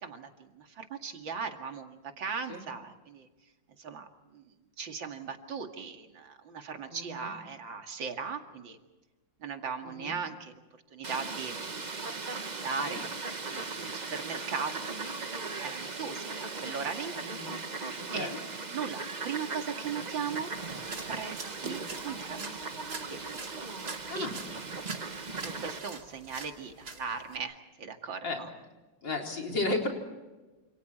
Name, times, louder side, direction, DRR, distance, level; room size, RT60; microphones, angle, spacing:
voice 1, 0.0-3.3 3.8-4.4 4.8-8.8 9.4-10.6 10.9-11.6 12.4-13.1 13.5-17.1 18.1-18.4 18.7-20.5 20.9-22.6 23.1-23.4 24.1-24.3 25.4-28.5, right 5 dB, 85° right, 4 dB, 2.8 m, -38 dB
voice 2, 6.9-7.3 9.8-10.2 12.8-13.0 17.2-17.5 18.0-18.4 21.6-21.8 24.1-24.3 28.2-28.4 29.0-29.9, left 2 dB, 75° left, 1 dB, 4.6 m, -34 dB
Fowl, 11.0-25.8, right 4 dB, 30° right, 1.0 m, -38 dB
sound 1, 20.5-27.4, right 4 dB, 60° right, 3.0 m, -45 dB
29.0 x 27.5 x 4.4 m, 1.2 s
omnidirectional pair, 2.0 m